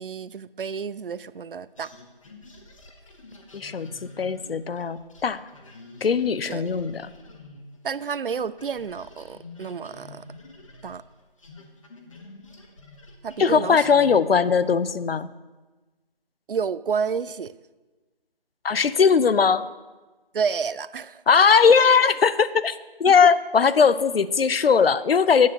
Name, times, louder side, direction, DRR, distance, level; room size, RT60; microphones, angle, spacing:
voice 1, 0.0-1.9 6.5-6.7 7.8-10.3 10.8-11.0 13.2-13.9 16.5-17.5 20.3-21.2 23.2-23.3, right 6 dB, 65° right, 18 dB, 0.4 m, -30 dB
sound 1, 1.8-8.0 8.3-14.5, left 3 dB, 35° left, 1.1 m, -47 dB
voice 2, 3.5-3.9 4.2-5.4 6.0-7.0 13.4-15.3 18.6-19.7 21.3-25.5, left 6 dB, 80° left, 15 dB, 0.6 m, -19 dB
13.0 x 9.3 x 2.9 m, 1.2 s
figure-of-eight pair, 165°, 29 cm